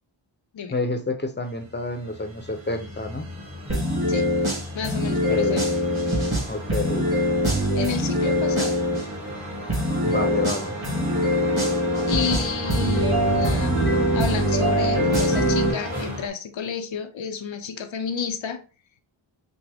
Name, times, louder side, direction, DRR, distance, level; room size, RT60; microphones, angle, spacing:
voice 1, 0.7-3.3 5.3-5.6 6.5-7.1 10.0-10.7, left 2 dB, 25° left, 0.7 m, -28 dB
sound 1, 1.6-16.3, equal, 35° right, 1.6 m, -34 dB
sound 2, 3.7-9.0 9.7-15.7, equal, 55° right, 2.4 m, -23 dB
voice 2, 4.7-5.6 7.7-8.8 12.1-13.8 14.1-18.6, left 6 dB, 75° left, 0.6 m, -30 dB
6.0 x 2.0 x 3.4 m
wide cardioid pair, 60°, 46 cm